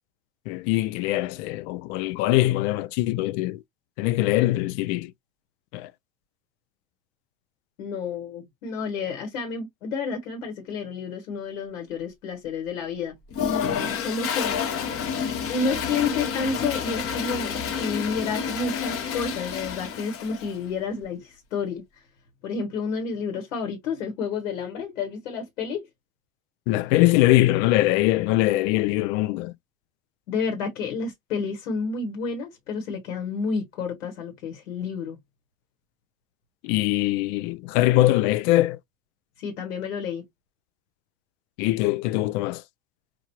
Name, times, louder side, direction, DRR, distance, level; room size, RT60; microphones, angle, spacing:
voice 1, 0.5-3.6 4.0-5.1 5.7-5.9 26.7-29.5 36.6-38.8 41.6-42.6, left 17 dB, 55° left, 0.5 m, -22 dB
voice 2, 7.8-13.2 14.0-14.6 15.5-21.8 22.4-25.9 30.3-35.2 39.4-40.3, left 5 dB, 75° left, 1.2 m, -30 dB
Toilet flush, 13.3-20.6, left 7 dB, 35° left, 0.8 m, -29 dB
4.6 x 2.3 x 2.9 m
hypercardioid pair, 80°, 40 cm